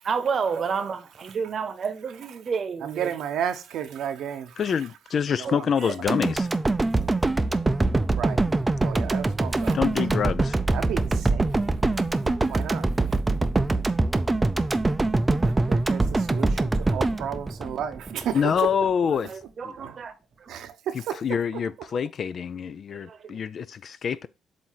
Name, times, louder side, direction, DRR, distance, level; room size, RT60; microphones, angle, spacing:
voice 1, 0.0-3.1 5.4-5.9 19.1-20.5 22.9-23.4, right 6 dB, 50° right, 0.9 m, -31 dB
voice 2, 2.8-4.5 5.4-5.6 8.1-8.4 8.8-9.9 10.7-11.5 12.5-12.9 15.7-18.7 19.8-20.0 20.5-21.2, right 9 dB, 80° right, 0.8 m, -32 dB
voice 3, 4.6-6.5 9.7-10.6 18.3-19.3 19.6-19.7 21.2-24.3, left 7 dB, 55° left, 0.4 m, -26 dB
sound 1, 6.1-18.3 18.7-18.8, right 2 dB, 20° right, 0.5 m, -24 dB
7.5 x 2.7 x 5.6 m
cardioid pair, 90°, 0 cm